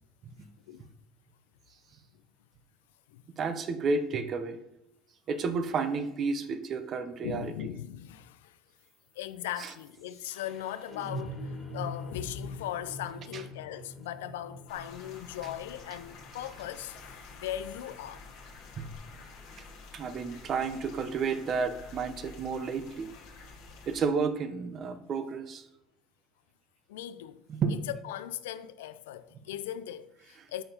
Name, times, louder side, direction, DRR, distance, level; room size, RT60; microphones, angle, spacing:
voice 1, 3.4-4.6 5.3-7.5 9.6-9.7 13.3-13.4 18.8-18.9 19.6-19.7 19.9-23.1 23.9-25.7 27.5-27.8 30.4-30.5, right 5 dB, 45° right, 0.6 m, -31 dB
voice 2, 7.2-8.6 9.2-11.4 11.7-18.2 26.9-27.4 27.9-30.6, left 12 dB, 90° left, 0.3 m, -39 dB
sound 1, 8.8-18.8, equal, 15° left, 1.8 m, -44 dB
sound 2, 14.7-24.1, left 4 dB, 65° left, 1.3 m, -49 dB
6.7 x 5.6 x 2.8 m
supercardioid pair, 95°, 0 cm